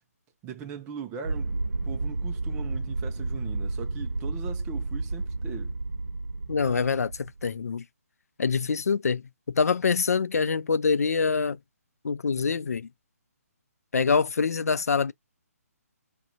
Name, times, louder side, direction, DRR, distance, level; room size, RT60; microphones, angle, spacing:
voice 1, 0.4-5.8, right 7 dB, 15° right, 0.4 m, -40 dB
sound 1, 1.2-7.5, right 3 dB, 80° right, 0.7 m, -31 dB
voice 2, 6.5-7.8 8.4-11.6 12.0-12.9 13.9-15.1, left 5 dB, 75° left, 0.4 m, -25 dB
4.9 x 2.2 x 2.6 m
figure-of-eight pair, 145°, 8 cm